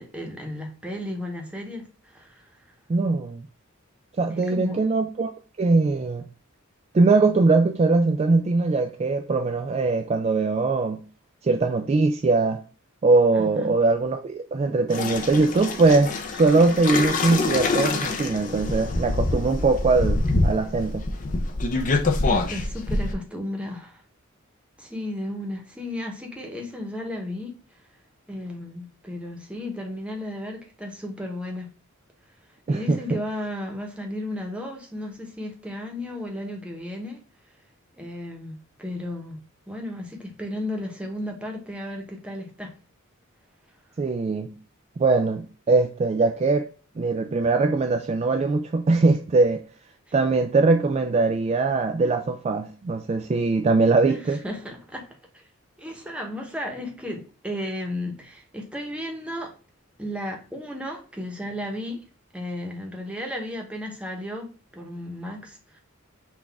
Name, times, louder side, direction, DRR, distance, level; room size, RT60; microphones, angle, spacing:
voice 1, 0.0-2.5 4.3-4.8 13.3-13.7 22.3-24.0 24.8-27.8 28.3-31.7 32.7-37.2 38.0-39.4 39.7-42.7 54.1-55.1 55.3-55.4 55.8-59.5 60.0-62.0 62.3-65.8, left 1 dB, 5° right, 0.9 m, -34 dB
voice 2, 2.9-3.4 4.2-5.3 5.6-6.3 6.9-11.0 11.4-12.6 13.0-21.1 32.7-33.2 44.0-44.5 45.0-46.7 47.0-49.6 50.1-54.4, right 3 dB, 30° right, 0.3 m, -21 dB
sound 1, 14.9-23.1, left 2 dB, 40° left, 0.6 m, -25 dB
5.9 x 2.5 x 3.4 m
head